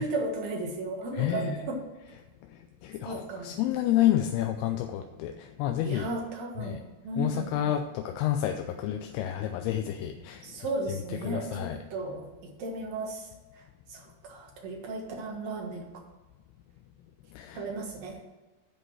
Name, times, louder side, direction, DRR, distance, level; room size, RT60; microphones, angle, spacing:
voice 1, 0.0-1.8 3.0-3.6 5.8-7.6 10.4-13.2 13.9-15.9 17.5-18.2, right 2 dB, 55° right, 0 dB, 2.3 m, -35 dB
voice 2, 1.1-1.6 2.5-6.1 6.6-6.8 7.2-10.6 10.9-11.0 11.2-11.8 17.3-17.7, left 12 dB, 85° left, 5 dB, 2.6 m, -29 dB
10.5 x 5.0 x 6.2 m, 1.2 s
omnidirectional pair, 4.6 m